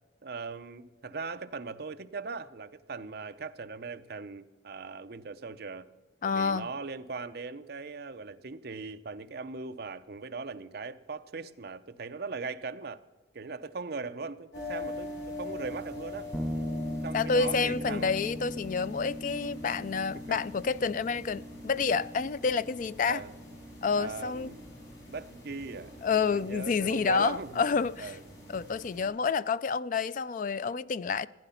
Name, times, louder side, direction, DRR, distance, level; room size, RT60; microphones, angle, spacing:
voice 1, 0.2-5.9 6.3-13.0 13.3-16.3 17.0-18.2 20.1-20.4 23.0-23.3 23.9-24.6 25.1-25.9 26.3-27.6 28.0-28.2, right 4 dB, 55° right, 0.6 m, -39 dB
voice 2, 6.2-6.7 17.1-23.2 23.8-24.5 26.0-28.1 28.5-31.3, left 5 dB, 45° left, 0.3 m, -29 dB
sound 1, 14.5-29.1, left 1 dB, 70° left, 5.5 m, -44 dB
sound 2, 16.3-25.8, left 1 dB, ahead, 0.7 m, -40 dB
15.5 x 10.0 x 5.7 m
head